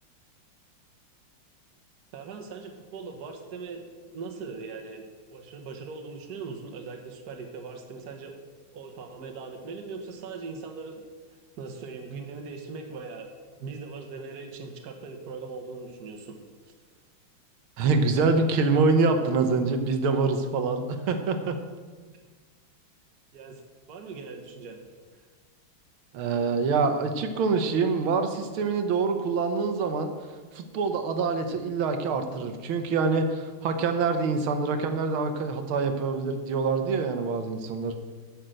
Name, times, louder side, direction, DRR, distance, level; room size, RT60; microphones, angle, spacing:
voice 1, 2.1-5.0 5.3-8.3 8.7-11.0 11.6-13.3 13.6-16.4 23.3-23.6 23.9-24.8, right 4 dB, 55° right, 3 dB, 1.6 m, -40 dB
voice 2, 17.8-21.6 26.1-30.1 30.5-38.0, right 4 dB, 80° right, 7 dB, 1.9 m, -25 dB
10.0 x 6.6 x 7.8 m, 1.5 s
omnidirectional pair, 2.3 m